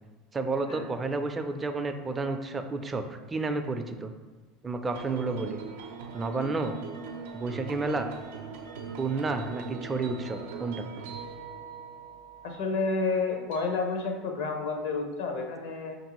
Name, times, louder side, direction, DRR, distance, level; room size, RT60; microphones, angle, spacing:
voice 1, 0.3-4.1 4.6-5.6 6.1-6.8 7.3-8.1 9.0-10.9, right 3 dB, 25° right, 7 dB, 0.4 m, -31 dB
sound 1, 4.9-13.8, right 5 dB, 80° right, 0.5 m, -41 dB
voice 2, 12.4-16.0, left 4 dB, 75° left, 3 dB, 0.7 m, -30 dB
5.3 x 2.6 x 2.9 m, 1.3 s
hypercardioid pair, 95°, 0 cm